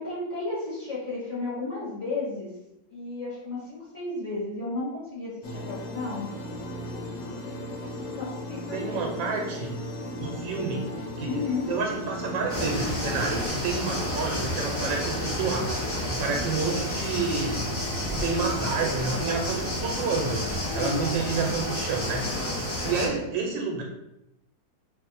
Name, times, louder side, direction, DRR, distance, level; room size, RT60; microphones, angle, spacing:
voice 1, 0.0-2.5 2.9-6.3 7.8-7.9 8.2-9.0 11.2-11.7 20.6-21.1, left 3 dB, 45° left, -8 dB, 1.2 m, -33 dB
sound 1, 5.4-13.5, left 1 dB, 80° left, 1.3 m, -36 dB
voice 2, 8.7-9.7 10.2-15.8 16.1-17.5 18.1-20.4 20.7-22.2 22.8-23.8, right 4 dB, 85° right, 0 dB, 1.3 m, -29 dB
sound 2, 12.5-23.1, left 1 dB, 15° left, 0.4 m, -30 dB
3.0 x 2.5 x 4.0 m, 0.87 s
omnidirectional pair, 2.0 m